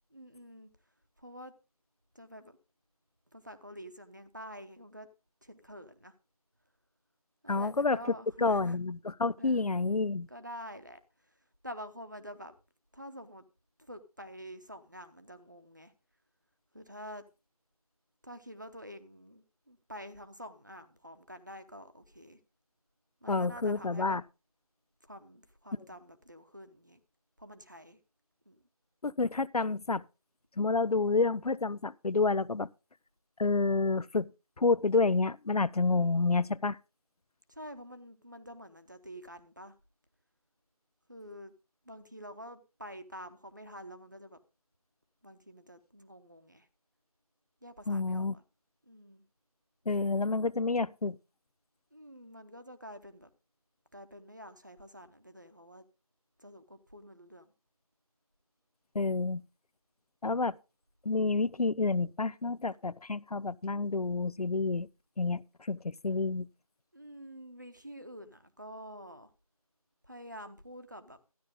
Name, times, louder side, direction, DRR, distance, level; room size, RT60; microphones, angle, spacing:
voice 1, 0.1-0.7 1.2-1.5 2.1-2.6 3.3-5.1 5.4-6.1 7.4-8.8 9.4-9.6 10.3-11.0 11.6-12.5 12.9-13.4 13.8-15.9 16.7-17.2 18.2-22.4 23.2-24.2 25.0-27.0 27.4-28.0 28.5-28.6 35.8-36.2 37.5-39.7 41.1-41.5 41.9-44.4 45.2-46.7 47.6-48.4 48.9-49.2 51.9-53.3 53.9-55.8 56.4-57.5 66.9-69.3 70.1-71.2, equal, 30° right, 0.9 m, -48 dB
voice 2, 7.5-8.0 8.4-10.3 23.3-24.2 29.0-30.0 30.6-32.7 33.4-34.3 34.6-36.8 47.9-48.4 49.9-51.2 58.9-59.4 60.2-60.6 61.0-64.9 65.2-66.5, left 3 dB, 85° left, 0.6 m, -29 dB
13.0 x 10.0 x 3.7 m
figure-of-eight pair, 175°, 19 cm